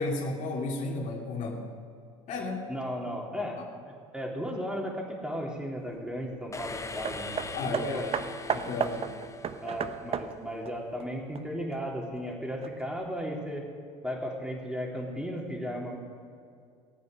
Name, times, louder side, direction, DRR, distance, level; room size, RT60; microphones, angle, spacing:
voice 1, 0.0-1.6 2.3-2.7 3.6-3.7 7.5-8.1 8.5-9.1, left 3 dB, 50° left, -2 dB, 2.5 m, -33 dB
voice 2, 2.7-3.6 4.1-8.1 9.6-13.6 14.0-16.0, equal, 5° right, -1 dB, 3.7 m, -35 dB
sound 1, 6.5-10.4, left 3 dB, 20° left, 1.0 m, -41 dB
Hammer, 7.1-11.8 12.6-12.7, right 7 dB, 35° right, 0.8 m, -34 dB
18.5 x 9.4 x 6.7 m, 2.3 s
hypercardioid pair, 70°, 17 cm